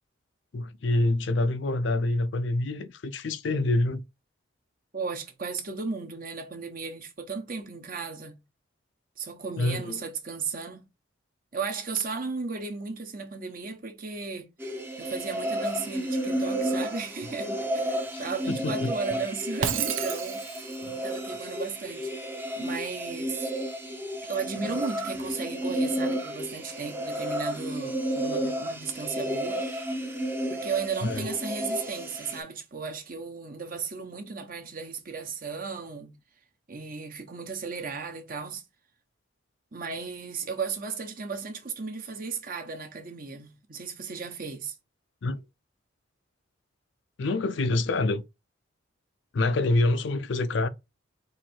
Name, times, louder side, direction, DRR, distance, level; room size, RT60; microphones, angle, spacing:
voice 1, 0.5-4.0 9.6-10.0 18.1-18.9 20.8-21.0 24.6-24.8 31.0-31.3 45.2-45.4 47.2-48.2 49.3-50.7, left 2 dB, 60° left, 0.4 m, -26 dB
voice 2, 4.9-8.4 9.2-10.8 11.5-14.5 15.0-20.6 21.0-22.1 22.6-23.5 24.2-29.6 30.5-36.2 36.7-38.6 39.7-44.7, right 5 dB, 45° right, 1.0 m, -35 dB
sound 1, 14.6-32.4, equal, 10° right, 0.6 m, -32 dB
Shatter, 19.6-20.8, right 8 dB, 80° right, 0.6 m, -30 dB
4.4 x 2.6 x 4.3 m
head